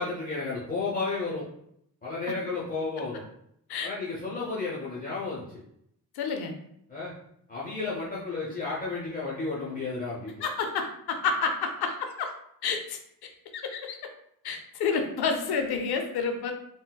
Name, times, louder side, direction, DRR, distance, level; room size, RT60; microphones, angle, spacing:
voice 1, 0.0-1.4 2.0-3.2 3.8-5.6 6.9-7.1 7.5-10.4, left 3 dB, 25° left, -7 dB, 0.7 m, -32 dB
voice 2, 6.1-6.6 10.4-12.3 12.6-13.0 13.5-14.0 14.4-16.5, left 5 dB, 85° left, 5 dB, 0.6 m, -29 dB
3.9 x 2.2 x 2.2 m, 0.73 s
cardioid pair, 110°, 37 cm